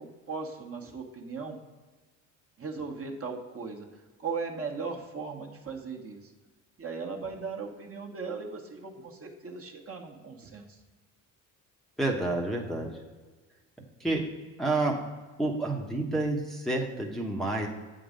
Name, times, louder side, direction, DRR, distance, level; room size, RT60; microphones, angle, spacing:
voice 1, 0.0-1.6 2.6-3.9 4.2-6.3 6.8-10.8, right 4 dB, 35° right, 1 dB, 1.3 m, -38 dB
voice 2, 12.0-12.9 14.0-14.2 14.6-14.9 15.4-17.7, right 2 dB, ahead, -2 dB, 1.0 m, -29 dB
7.9 x 3.9 x 5.1 m, 1.3 s
supercardioid pair, 70°, 40 cm